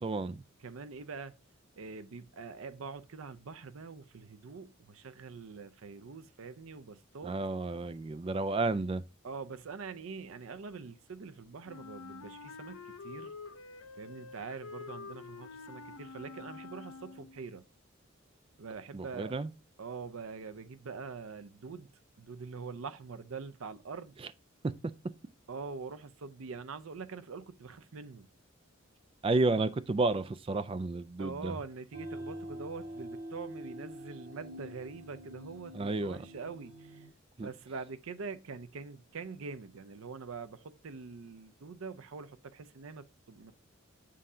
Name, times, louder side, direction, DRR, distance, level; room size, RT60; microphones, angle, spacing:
voice 1, 0.0-0.4 7.2-9.0 18.9-19.5 29.2-31.6 35.7-36.2 37.4-37.5, right 3 dB, 25° right, 0.3 m, -31 dB
voice 2, 0.6-1.3 1.8-7.4 9.2-13.3 14.0-17.6 18.6-19.4 19.8-21.9 22.2-24.2 25.5-28.3 31.2-37.1 37.4-43.5, right 4 dB, 75° right, 0.5 m, -44 dB
Wind instrument woodwind instrument, 11.6-17.5, left 4 dB, 80° left, 0.6 m, -47 dB
sound 1, 31.9-37.1, right 1 dB, 60° right, 1.9 m, -45 dB
7.6 x 2.8 x 4.9 m
head